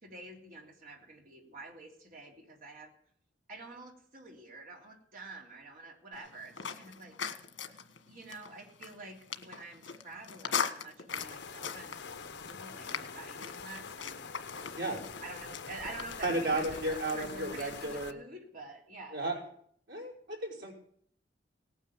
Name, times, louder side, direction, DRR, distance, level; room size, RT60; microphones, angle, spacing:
voice 1, 0.0-2.9 3.5-7.1 8.0-14.2 15.2-19.2, right 2 dB, 50° right, 1 dB, 3.4 m, -48 dB
sound 1, 6.1-17.8, left 6 dB, 85° left, 1.5 m, -41 dB
sound 2, 11.1-18.1, left 5 dB, 65° left, 1.0 m, -45 dB
voice 2, 16.2-18.2 19.1-19.4 19.9-20.7, right 2 dB, 80° right, 0 dB, 5.4 m, -33 dB
18.5 x 9.4 x 7.3 m, 0.63 s
head